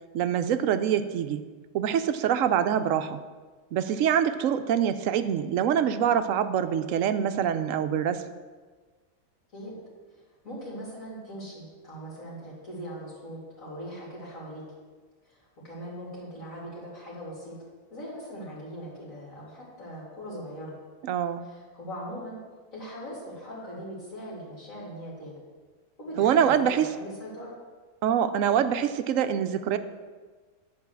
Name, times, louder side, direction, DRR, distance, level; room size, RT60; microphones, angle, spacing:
voice 1, 0.1-1.4 1.7-3.2 3.7-8.2 21.0-21.4 26.2-26.9 28.0-29.8, right 9 dB, 70° right, 10 dB, 0.9 m, -25 dB
voice 2, 10.4-14.6 15.3-15.4 15.6-17.6 17.9-20.8 21.4-22.4 22.7-25.3 26.0-27.5, equal, 70° left, -6 dB, 3.1 m, -40 dB
9.7 x 4.7 x 6.9 m, 1.4 s
omnidirectional pair, 1.4 m